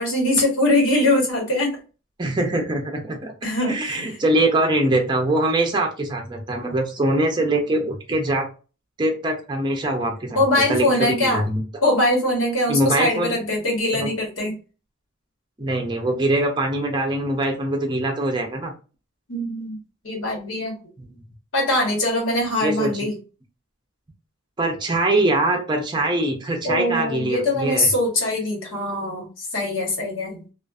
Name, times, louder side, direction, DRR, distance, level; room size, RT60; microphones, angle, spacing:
voice 1, 0.0-1.7 3.4-4.2 10.3-11.4 11.8-14.5 19.3-19.8 20.0-20.8 21.5-23.1 26.6-30.4, left 1 dB, 85° left, -1 dB, 1.3 m, -22 dB
voice 2, 2.2-3.3 3.7-8.5 9.0-10.4 10.7-11.6 12.7-13.4 13.9-14.1 15.6-18.7 21.0-21.1 22.6-23.1 24.6-27.9, right 1 dB, 25° right, 2 dB, 0.5 m, -23 dB
2.5 x 2.4 x 2.3 m, 0.33 s
head